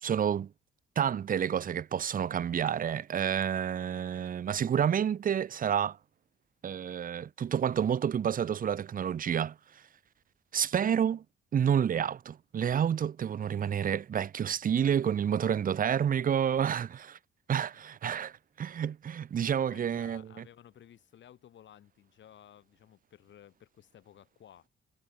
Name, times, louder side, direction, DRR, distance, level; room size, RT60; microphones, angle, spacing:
voice 1, 0.0-0.5 1.0-6.0 6.6-9.6 10.5-11.2 11.5-17.2 17.5-20.2, right 8 dB, 45° right, 0.8 m, -29 dB
voice 2, 19.5-24.7, left 10 dB, 65° left, 6.3 m, -56 dB
cardioid pair, 90°, 20 cm